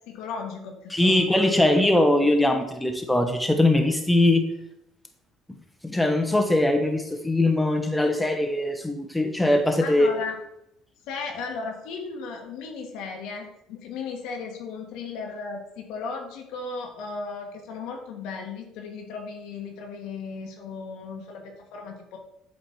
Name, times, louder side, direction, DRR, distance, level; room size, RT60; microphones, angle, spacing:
voice 1, 0.1-1.7 9.8-10.4 11.1-22.2, left 4 dB, 75° left, 2 dB, 1.3 m, -36 dB
voice 2, 0.9-4.5 5.8-10.1, left 1 dB, 5° left, 4 dB, 0.9 m, -21 dB
7.7 x 3.3 x 4.4 m, 0.80 s
supercardioid pair, 85°, 0 cm